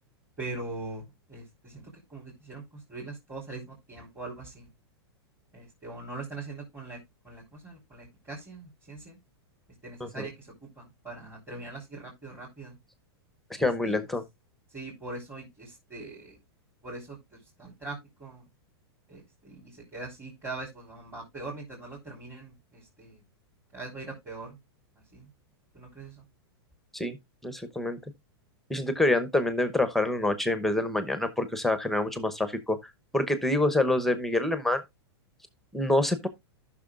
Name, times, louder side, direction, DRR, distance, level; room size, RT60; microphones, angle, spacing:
voice 1, 0.4-1.0 1.3-2.6 2.9-4.7 5.5-7.0 7.2-9.2 9.8-10.5 10.8-12.8 13.5-14.0 14.7-16.4 16.8-17.2 17.6-18.4 19.1-23.2 23.7-24.6 25.1-25.3 25.7-26.2, right 2 dB, 20° right, 3.5 m, -41 dB
voice 2, 13.5-14.2 26.9-27.2 27.4-28.0 28.7-32.8 33.1-34.8 35.7-36.3, left 1 dB, ahead, 0.9 m, -26 dB
13.5 x 6.0 x 2.4 m
hypercardioid pair, 125°, 13 cm